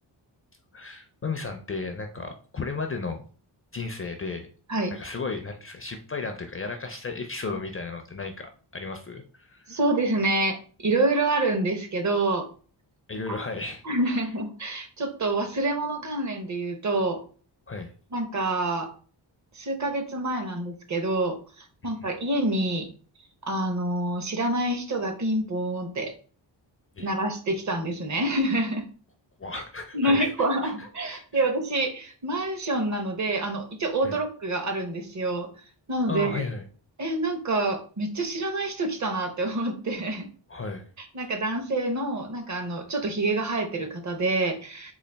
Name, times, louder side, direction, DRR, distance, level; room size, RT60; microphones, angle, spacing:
voice 1, 0.7-3.2 3.7-4.5 4.9-9.8 13.1-14.2 17.7-17.9 21.8-22.1 27.0-27.1 29.4-30.3 30.6-31.4 34.0-34.2 36.1-36.6 40.5-40.9, left 4 dB, 30° left, 5 dB, 0.4 m, -34 dB
voice 2, 9.7-12.5 13.3-13.4 13.8-17.2 18.1-18.9 19.6-22.9 23.4-26.1 27.0-28.8 29.9-35.5 35.9-36.4 37.0-40.3 41.1-44.9, right 2 dB, 40° right, 5 dB, 0.7 m, -27 dB
3.9 x 2.4 x 3.3 m, 0.40 s
wide cardioid pair, 110°, 45 cm